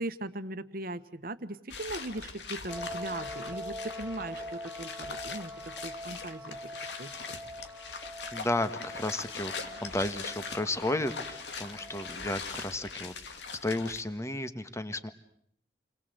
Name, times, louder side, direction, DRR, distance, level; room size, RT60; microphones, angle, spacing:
voice 1, 0.0-7.4, right 2 dB, 55° right, 12 dB, 1.4 m, -39 dB
sound 1, 1.7-14.0, left 5 dB, 80° left, 2.3 m, -42 dB
sound 2, 2.7-12.4, equal, ahead, 4.0 m, -44 dB
voice 2, 8.3-9.5 9.8-15.1, left 2 dB, 15° left, 11 dB, 1.5 m, -33 dB
29.5 x 22.5 x 8.0 m, 0.68 s
head